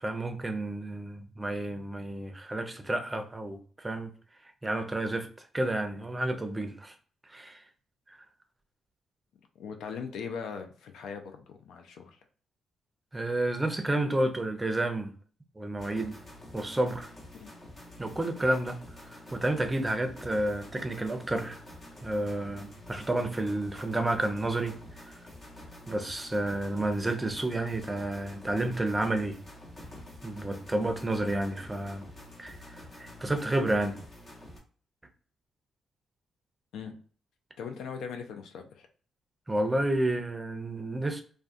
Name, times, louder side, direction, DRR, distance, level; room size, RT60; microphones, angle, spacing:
voice 1, 0.0-4.1 4.6-5.3 5.5-6.9 7.3-7.6 8.1-8.2 13.1-15.1 15.6-16.2 16.5-17.1 18.0-18.8 19.0-21.6 22.0-24.8 25.1-25.2 25.9-29.4 30.2-32.0 32.4-34.0 39.5-41.2, right 1 dB, 20° right, 0.5 m, -30 dB
voice 2, 9.6-12.2 17.3-17.5 36.7-37.0 37.6-38.9, left 6 dB, 75° left, 0.4 m, -40 dB
sound 1, 15.8-34.6, left 1 dB, 40° left, 0.9 m, -48 dB
2.3 x 2.2 x 2.5 m
supercardioid pair, 50°, 0 cm